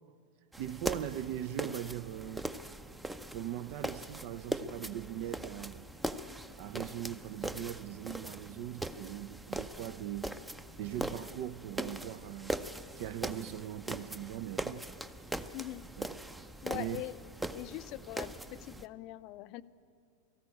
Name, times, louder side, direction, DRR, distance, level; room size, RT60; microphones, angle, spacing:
sound 1, 0.5-18.9, right 1 dB, 5° right, 0.6 m, -41 dB
voice 1, 0.6-2.5 3.3-5.9 6.6-10.3 10.8-12.5 13.0-14.9 16.0-16.1 16.7-17.0, right 12 dB, 45° right, 0.5 m, -40 dB
voice 2, 15.5-15.8 16.6-17.2 17.4-19.6, left 17 dB, 40° left, 0.5 m, -42 dB
18.0 x 14.5 x 9.8 m
figure-of-eight pair, 90°, 0 cm